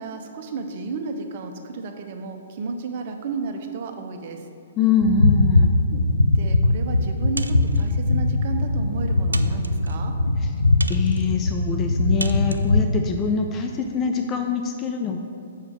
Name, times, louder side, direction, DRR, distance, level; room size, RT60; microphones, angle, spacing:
voice 1, 0.0-4.4 5.9-6.0 6.3-10.1, right 4 dB, 45° right, 5 dB, 0.7 m, -32 dB
voice 2, 4.8-5.7 10.4-10.5 10.9-15.2, left 5 dB, 25° left, 4 dB, 0.5 m, -24 dB
sound 1, 5.0-13.1, left 2 dB, 85° left, 0.5 m, -21 dB
sound 2, 7.4-7.9 8.6-8.7 9.3-10.0 10.8-11.3 12.2-12.7, right 2 dB, 85° right, 0.3 m, -35 dB
6.5 x 4.9 x 6.1 m, 2.5 s
figure-of-eight pair, 120°, 0 cm